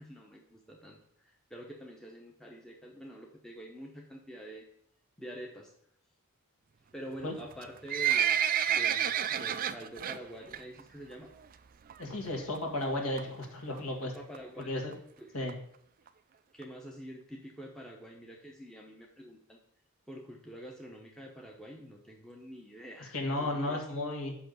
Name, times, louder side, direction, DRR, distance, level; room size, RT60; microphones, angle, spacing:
voice 1, 0.0-4.6 5.2-5.7 6.9-8.4 8.7-11.3 14.0-14.8 15.2-15.4 16.5-19.6 20.1-23.9, equal, 5° left, -1 dB, 0.8 m, -47 dB
Livestock farm animals working animals, 7.5-10.2 10.5-10.8 11.1-11.2 11.9-12.0 12.3-12.4 12.5-12.6 13.2-13.4 14.0-14.1 14.3-14.4 14.6-14.7 14.9-15.0 15.5-15.6 16.1-16.2 16.6-16.7, right 9 dB, 40° right, 0.3 m, -29 dB
voice 2, 12.0-14.1 14.7-14.9 15.3-15.6 23.1-24.3, left 1 dB, 70° left, 2 dB, 1.8 m, -34 dB
5.8 x 5.6 x 6.8 m, 0.68 s
head